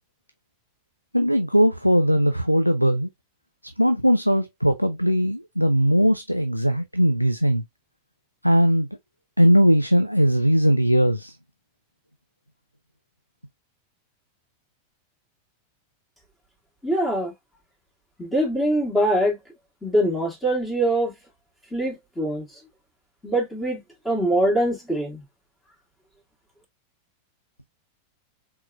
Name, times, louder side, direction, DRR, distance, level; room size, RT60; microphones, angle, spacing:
voice 1, 1.1-3.1 3.8-7.6 8.4-8.9 9.4-11.4, equal, 90° left, 0.4 m, -19 dB
voice 2, 16.8-17.3 18.2-19.4 19.8-21.1 21.7-22.5 23.2-25.2, right 1 dB, 10° left, 2.2 m, -23 dB
4.4 x 3.7 x 2.4 m
figure-of-eight pair, 90°, 0 cm